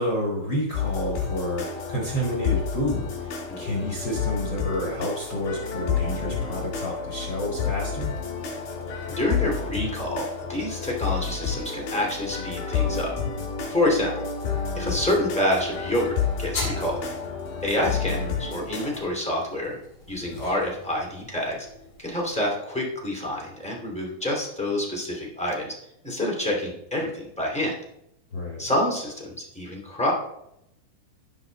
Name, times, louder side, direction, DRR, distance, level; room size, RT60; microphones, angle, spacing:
voice 1, 0.0-8.1 18.0-18.3 28.3-28.7, equal, 90° left, -2 dB, 1.0 m, -29 dB
sound 1, 0.7-19.0, left 6 dB, 55° left, 4.8 m, -30 dB
voice 2, 9.1-13.1 13.7-14.2 14.7-16.1 16.4-17.0 17.6-19.8 20.1-21.7 22.0-25.7 26.0-27.7 28.6-30.1, left 1 dB, 5° left, -1 dB, 1.3 m, -27 dB
sound 2, 16.5-22.5, left 2 dB, 35° left, 5.4 m, -40 dB
14.5 x 5.6 x 4.1 m, 0.79 s
omnidirectional pair, 5.2 m